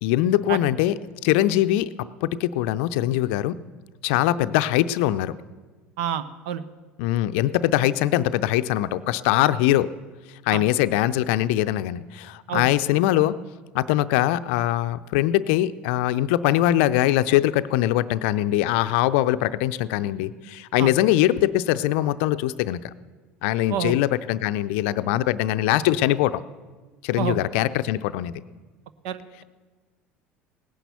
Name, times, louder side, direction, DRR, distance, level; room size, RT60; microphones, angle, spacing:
voice 1, 0.0-3.6 4.0-5.3 7.0-9.9 10.5-13.4 13.7-22.8 23.4-26.4 27.0-28.3, left 14 dB, 65° left, 13 dB, 0.5 m, -22 dB
voice 2, 6.0-6.6 10.5-10.6 12.5-12.6 20.8-20.9 23.7-23.9 27.2-27.4 29.0-29.4, right 9 dB, 65° right, 15 dB, 0.8 m, -28 dB
18.0 x 10.0 x 6.9 m, 1.3 s
figure-of-eight pair, 70°, 7 cm